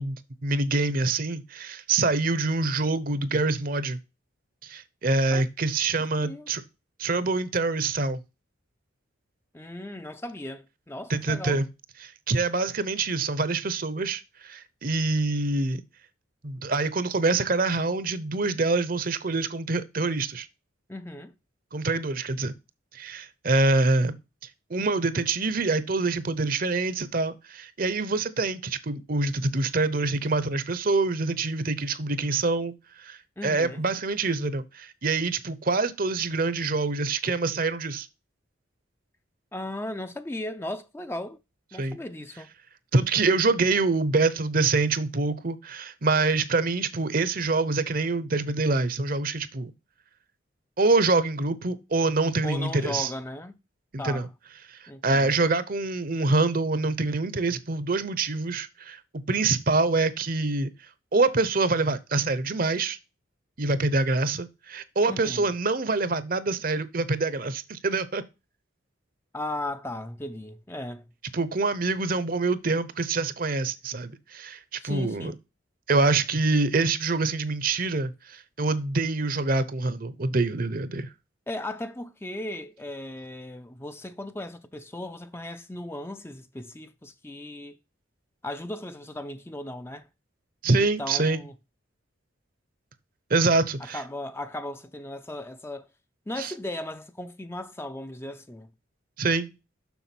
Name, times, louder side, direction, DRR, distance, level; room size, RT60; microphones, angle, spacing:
voice 1, 0.0-4.0 4.6-6.6 7.0-8.2 11.1-11.7 12.0-15.8 16.4-20.5 21.7-22.5 22.9-24.2 24.7-38.1 41.8-42.0 42.9-49.7 50.8-53.1 53.9-54.3 54.7-59.0 59.3-60.7 61.1-63.0 63.6-68.2 71.3-75.3 75.9-81.1 90.6-91.4 93.3-94.0 96.4-96.5 99.2-99.5, right 3 dB, 45° right, 0.8 m, -25 dB
voice 2, 6.2-6.5 9.5-11.6 20.9-21.3 33.4-33.8 39.5-41.4 41.7-42.5 52.4-53.6 54.0-54.3 54.9-55.4 65.1-65.5 69.3-71.0 74.8-75.4 81.5-87.8 88.4-90.1 90.8-91.5 93.8-95.9 96.3-98.7, left 1 dB, 10° left, 0.5 m, -36 dB
7.0 x 6.2 x 6.0 m
head